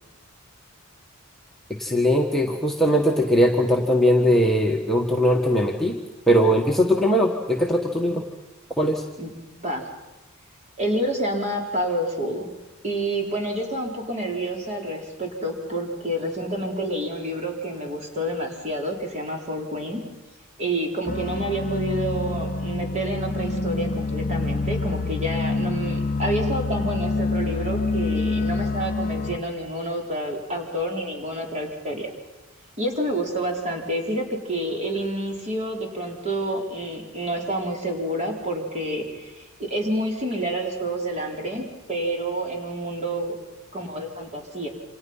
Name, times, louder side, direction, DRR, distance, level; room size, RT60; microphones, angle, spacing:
voice 1, 1.8-6.0 6.3-8.2 8.8-9.0, equal, ahead, -2 dB, 1.7 m, -20 dB
voice 2, 9.2-9.9 10.8-12.5 12.8-20.0 20.6-32.1 32.8-43.3 43.7-44.7, right 1 dB, 30° right, 1 dB, 4.4 m, -28 dB
sound 1, 21.1-29.4, left 3 dB, 40° left, 0.8 m, -26 dB
28.5 x 26.5 x 5.7 m, 1.1 s
head